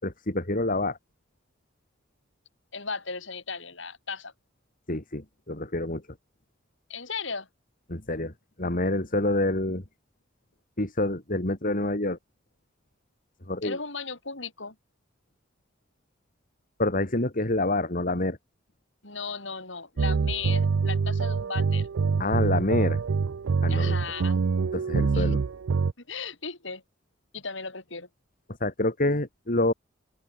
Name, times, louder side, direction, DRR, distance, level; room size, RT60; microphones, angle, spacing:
voice 1, 0.0-1.0 4.9-6.0 7.9-8.3 8.6-9.8 10.8-12.2 13.5-13.8 16.8-18.4 22.2-23.0 23.6-24.0 24.7-25.4 28.6-29.7, left 2 dB, 45° left, 3.7 m, -27 dB
voice 2, 2.7-4.3 6.9-7.5 13.6-14.8 19.0-21.9 23.7-24.4 25.1-25.3 26.0-26.8 27.3-28.1, left 5 dB, 70° left, 7.1 m, -36 dB
sound 1, 20.0-25.9, right 5 dB, 90° right, 0.5 m, -25 dB
open air
head